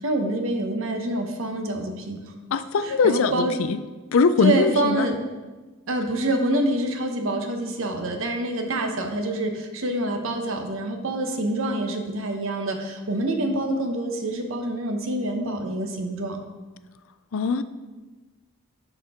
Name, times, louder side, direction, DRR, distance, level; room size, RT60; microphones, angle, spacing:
voice 1, 0.0-2.2 2.8-3.6 4.4-5.2 5.9-16.4, right 1 dB, 65° right, 4 dB, 0.9 m, -26 dB
voice 2, 2.5-3.8 4.1-5.1 17.3-17.6, left 4 dB, 70° left, 13 dB, 0.4 m, -21 dB
11.0 x 4.4 x 3.6 m, 1.2 s
head